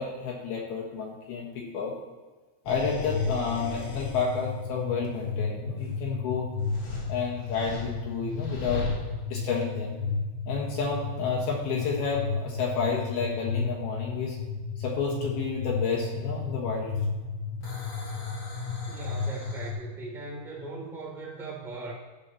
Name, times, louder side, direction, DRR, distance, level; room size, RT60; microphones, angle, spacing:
voice 1, 0.0-1.9 2.7-6.5 7.1-8.9 9.3-9.9 10.5-14.4 14.8-16.9, left 5 dB, 65° left, -2 dB, 3.0 m, -30 dB
sound 1, 2.7-19.7, left 4 dB, 45° left, 1.8 m, -33 dB
voice 2, 18.9-21.9, right 3 dB, ahead, -4 dB, 1.4 m, -39 dB
15.0 x 9.2 x 3.0 m, 1.3 s
omnidirectional pair, 5.6 m